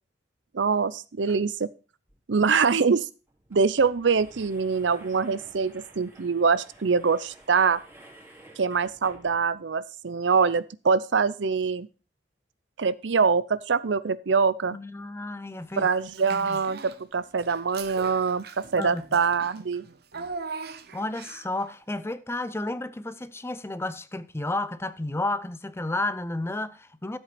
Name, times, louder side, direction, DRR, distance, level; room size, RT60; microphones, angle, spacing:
voice 1, 0.5-1.7 2.3-3.1 3.5-7.8 8.6-11.9 12.8-14.8 15.8-19.8, right 5 dB, 75° right, 0.6 m, -24 dB
sound 1, 2.1-2.2 2.5-2.6 3.3-9.7, right 1 dB, 15° right, 2.7 m, -52 dB
voice 2, 14.7-15.9 16.3-16.6 18.8-19.2 20.9-27.2, left 2 dB, 15° left, 0.6 m, -32 dB
Child speech kid speaking / Bathtub (filling or washing), 16.1-17.0 17.4-21.6, right 4 dB, 60° right, 1.0 m, -40 dB
13.0 x 7.9 x 4.3 m
head